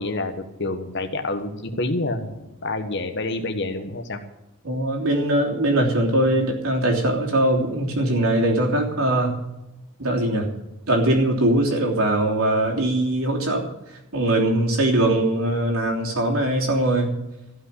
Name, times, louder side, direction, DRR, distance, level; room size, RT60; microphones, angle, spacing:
voice 1, 0.0-4.2, left 2 dB, 50° left, 6 dB, 1.4 m, -28 dB
voice 2, 4.6-9.4 10.0-10.4 10.9-13.7 14.1-17.1, right 1 dB, 75° right, 0 dB, 3.2 m, -21 dB
15.5 x 5.8 x 9.8 m, 0.97 s
head